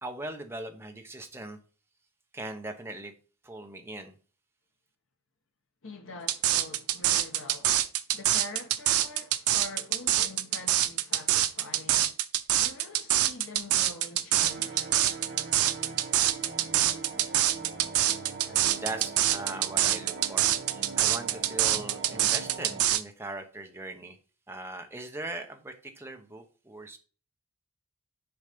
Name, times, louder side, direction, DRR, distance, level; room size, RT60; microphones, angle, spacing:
voice 1, 0.0-1.6 2.3-3.1 3.4-4.1 18.5-24.2 24.5-27.0, right 2 dB, 10° right, 1.0 m, -40 dB
voice 2, 5.8-7.8 8.1-12.2 12.6-14.9, left 2 dB, 65° left, 1.2 m, -45 dB
sound 1, 6.3-23.0, right 12 dB, 85° right, 0.6 m, -25 dB
sound 2, 14.4-22.8, right 4 dB, 50° right, 2.7 m, -41 dB
7.0 x 4.1 x 5.2 m
head